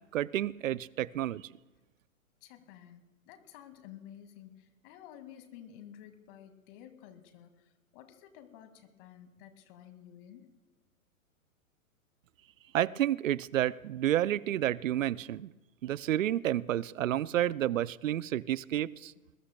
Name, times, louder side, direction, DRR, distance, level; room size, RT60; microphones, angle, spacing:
voice 1, 0.1-1.5 12.7-15.5 15.8-19.1, right 12 dB, 65° right, 20 dB, 0.6 m, -30 dB
voice 2, 2.4-10.5, left 10 dB, 40° left, 8 dB, 2.1 m, -52 dB
25.5 x 21.5 x 2.3 m, 1.1 s
figure-of-eight pair, 115°, 42 cm